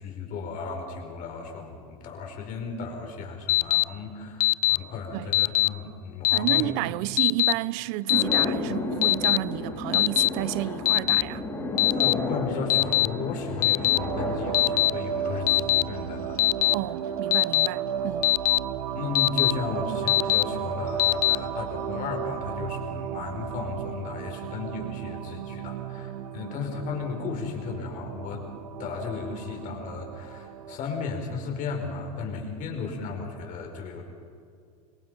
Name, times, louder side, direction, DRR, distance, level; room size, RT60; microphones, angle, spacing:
voice 1, 0.0-6.7 11.9-16.4 18.9-28.5 28.8-34.0, left 4 dB, 45° left, 5.4 m, -34 dB
Alarm, 3.5-3.8 4.4-4.8 5.3-5.7 6.2-6.6 7.2-7.5 8.1-8.4 9.0-9.4 9.9-10.3 10.9-11.2 11.8-12.1 12.7-13.1 13.6-14.0 14.5-14.9 15.5-15.8 16.4-16.7 17.3-17.7 18.2-18.6 19.1-19.5 20.1-20.4 21.0-21.4, left 16 dB, 80° left, 0.5 m, -21 dB
voice 2, 6.3-11.5 16.7-18.3, right 18 dB, 60° right, 0.7 m, -31 dB
sound 1, 8.1-18.5, left 2 dB, 20° left, 5.5 m, -34 dB
sound 2, 13.9-30.8, right 8 dB, 80° right, 1.2 m, -34 dB
26.5 x 22.0 x 5.8 m
supercardioid pair, 115°, 18 cm